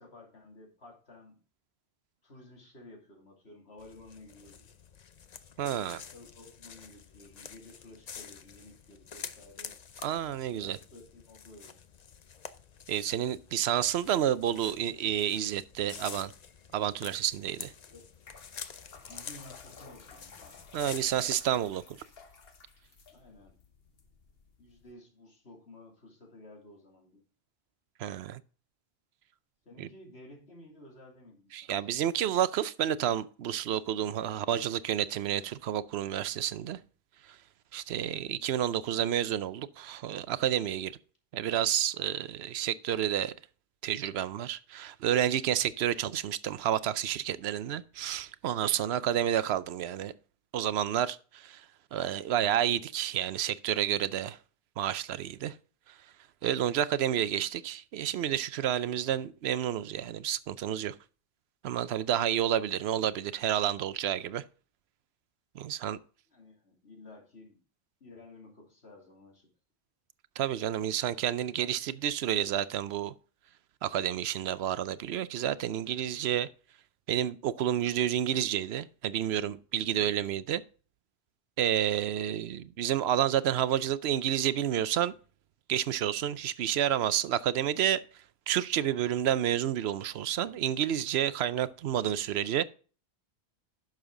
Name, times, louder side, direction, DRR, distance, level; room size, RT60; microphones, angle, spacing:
voice 1, 0.0-1.4 2.2-4.7 5.7-9.8 10.5-11.8 17.8-18.0 19.1-20.8 23.1-23.5 24.6-27.2 29.6-31.7 34.3-34.4 66.3-67.6 68.0-69.5 79.8-79.9, left 2 dB, 90° left, 3.0 m, -53 dB
sound 1, 3.8-21.4, left 7 dB, 45° left, 0.7 m, -48 dB
voice 2, 5.6-6.0 10.0-10.8 12.9-16.3 16.7-17.7 20.7-22.0 28.0-28.4 29.8-29.9 31.5-36.8 37.7-40.9 41.3-43.3 43.8-50.1 50.5-51.6 51.9-54.4 54.8-55.5 56.4-60.9 61.6-64.4 65.6-66.0 70.4-73.1 73.8-76.5 77.1-80.6 81.6-85.1 85.7-88.0 88.5-92.6, right 10 dB, 80° right, 0.9 m, -30 dB
sound 2, 18.0-24.9, left 5 dB, 65° left, 1.3 m, -54 dB
10.5 x 6.6 x 3.7 m
omnidirectional pair, 1.1 m